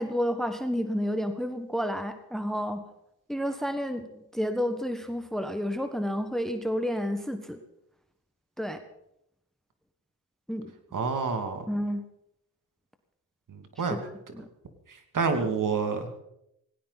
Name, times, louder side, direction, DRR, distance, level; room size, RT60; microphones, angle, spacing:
voice 1, 0.0-2.8 3.3-7.6 8.6-8.8 10.5-10.7 11.7-12.0 13.9-14.5, equal, ahead, 8 dB, 1.4 m, -30 dB
voice 2, 10.9-11.7 13.5-14.0 14.9-16.2, right 5 dB, 50° right, 6 dB, 2.6 m, -28 dB
17.5 x 17.5 x 4.1 m, 0.80 s
cardioid pair, 70°, 40 cm